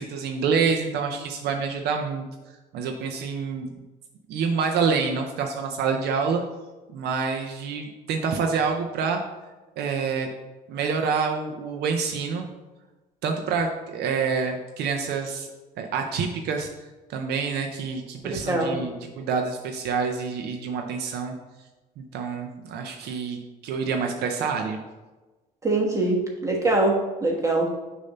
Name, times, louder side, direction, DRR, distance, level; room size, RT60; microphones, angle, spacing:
voice 1, 0.0-2.2 2.7-3.7 4.3-6.4 6.9-9.2 9.8-10.3 10.7-12.5 13.2-15.5 15.8-16.7 17.1-21.3 22.0-24.8, right 5 dB, 75° right, 3 dB, 0.6 m, -27 dB
voice 2, 18.2-18.8 25.6-26.9 27.2-27.7, right 2 dB, 20° right, -1 dB, 1.2 m, -23 dB
6.5 x 2.7 x 5.4 m, 1.2 s
cardioid pair, 110°, 17 cm